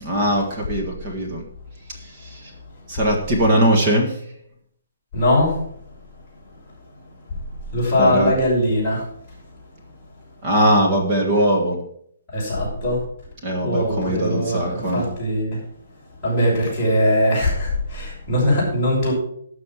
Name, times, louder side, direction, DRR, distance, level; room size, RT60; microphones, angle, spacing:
voice 1, 0.0-1.4 2.0-2.5 2.9-4.2 8.0-8.3 10.4-11.8 13.4-15.0, right 1 dB, 25° right, 1 dB, 1.6 m, -20 dB
voice 2, 5.1-5.6 7.7-9.1 12.3-13.0 13.6-15.6 16.2-19.1, left 1 dB, 5° left, -11 dB, 6.0 m, -20 dB
12.5 x 6.5 x 5.9 m, 0.66 s
hypercardioid pair, 175°, 0 cm